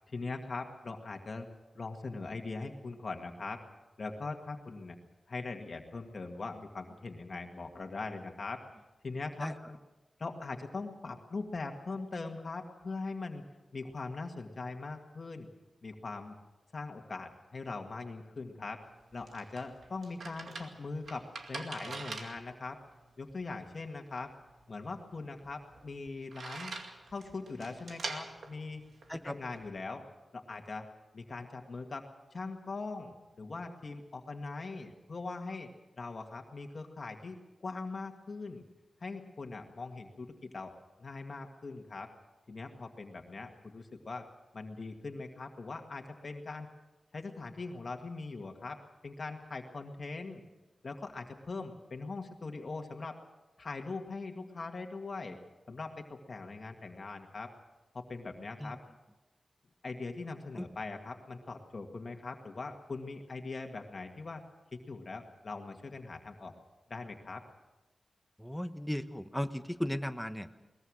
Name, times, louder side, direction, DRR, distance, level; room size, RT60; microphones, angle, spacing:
voice 1, 0.1-1.5 1.8-3.6 4.0-5.0 5.3-8.6 9.0-9.8 10.2-13.5 13.7-15.5 15.8-16.4 16.7-18.8 19.1-22.8 23.2-24.3 24.7-26.8 27.1-28.8 29.2-30.0 30.3-30.9 31.1-38.6 39.0-40.7 41.0-42.1 42.5-44.3 44.5-46.7 47.1-50.4 50.8-53.2 53.6-55.4 55.7-57.5 57.9-58.8 59.8-64.4 64.7-66.5 66.9-67.4, left 3 dB, 55° left, 4 dB, 1.9 m, -41 dB
sound 1, 18.8-29.7, right 3 dB, 85° right, 2.3 m, -45 dB
voice 2, 68.4-70.5, equal, 5° left, 9 dB, 1.1 m, -36 dB
22.0 x 20.5 x 6.4 m, 1.1 s
wide cardioid pair, 100°, 0 cm